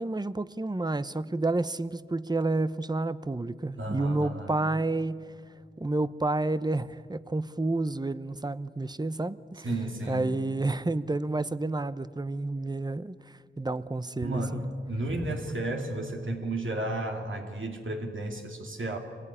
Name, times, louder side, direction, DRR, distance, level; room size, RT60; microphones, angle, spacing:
voice 1, 0.0-5.3 5.8-9.7 10.1-13.2 13.6-14.7, right 2 dB, 20° right, 0.8 m, -30 dB
voice 2, 3.8-4.5 9.6-10.3 14.2-19.0, right 1 dB, 80° right, 2.6 m, -33 dB
25.5 x 20.5 x 10.0 m
wide cardioid pair, 70°, 20 cm